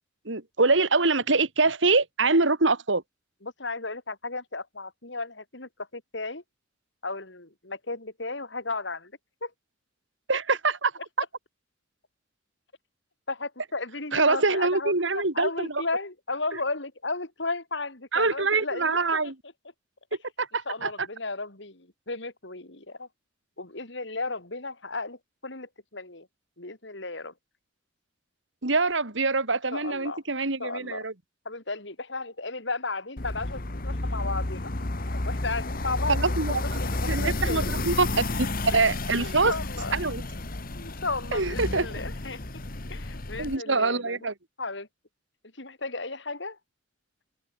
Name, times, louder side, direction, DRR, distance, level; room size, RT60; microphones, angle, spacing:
voice 1, 0.3-3.0 10.3-10.9 14.1-15.7 18.1-19.3 20.4-20.9 28.6-31.1 36.1-36.6 37.1-38.1 38.6-39.5 39.9-40.2 41.3-41.9 43.4-44.3, right 3 dB, 75° right, 2.4 m, -24 dB
voice 2, 3.4-6.4 7.0-9.1 9.4-9.5 13.3-19.3 20.7-23.1 23.6-26.3 26.6-27.3 29.7-30.2 30.6-31.1 31.4-34.7 35.1-37.7 38.7-38.8 39.2-40.0 40.7-42.4 42.9-44.3 44.6-44.9 45.6-46.6, left 3 dB, 65° left, 4.1 m, -34 dB
sound 1, 33.2-43.6, left 2 dB, 50° left, 1.7 m, -31 dB
head